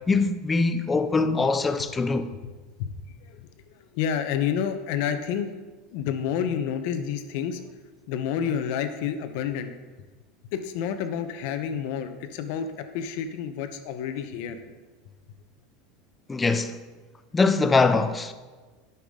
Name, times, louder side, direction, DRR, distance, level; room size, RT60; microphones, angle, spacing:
voice 1, 0.1-2.3 16.3-16.8 17.3-18.3, left 3 dB, 10° left, 0.4 m, -22 dB
voice 2, 3.9-5.5 5.9-7.6 8.1-9.7 10.5-12.7 12.9-14.6, left 8 dB, 55° left, 0.8 m, -29 dB
12.0 x 5.9 x 3.7 m
supercardioid pair, 160°, 0 cm